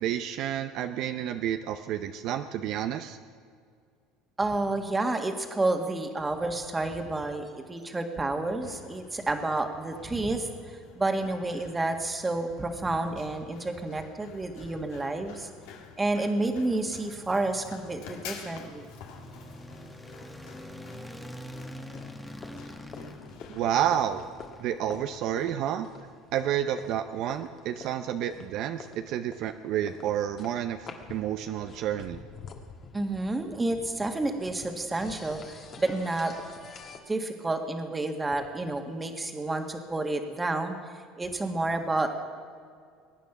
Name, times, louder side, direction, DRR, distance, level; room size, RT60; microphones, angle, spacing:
voice 1, 0.0-3.2 23.5-24.2 24.6-25.9 26.3-32.2, right 10 dB, 65° right, 8 dB, 0.7 m, -30 dB
voice 2, 4.4-15.5 16.0-18.9 32.9-36.3 37.1-40.8 41.2-42.1, right 2 dB, 15° right, 5 dB, 1.7 m, -30 dB
Run, 8.4-24.4, left 6 dB, 80° left, 1.9 m, -49 dB
sound 1, 16.9-25.2, equal, 5° left, 1.2 m, -45 dB
sound 2, 21.9-37.0, left 5 dB, 40° left, 1.8 m, -48 dB
21.5 x 9.2 x 6.0 m, 2.2 s
supercardioid pair, 100°, 0 cm